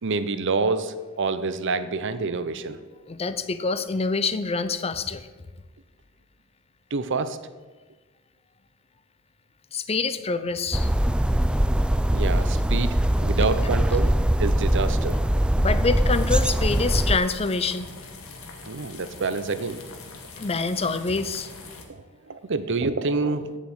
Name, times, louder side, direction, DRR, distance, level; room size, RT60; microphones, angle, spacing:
voice 1, 0.0-2.8 6.9-7.4 12.1-15.2 18.7-19.8 21.9-23.5, right 4 dB, 60° right, 12 dB, 0.7 m, -27 dB
voice 2, 3.1-5.3 9.7-10.9 13.4-13.5 15.6-17.9 20.4-21.5, left 4 dB, 30° left, 12 dB, 0.6 m, -26 dB
sound 1, 10.7-17.2, right 1 dB, 5° right, 0.3 m, -22 dB
sound 2, 16.1-21.8, left 3 dB, 80° left, 1.7 m, -43 dB
8.6 x 7.4 x 8.7 m, 1.3 s
head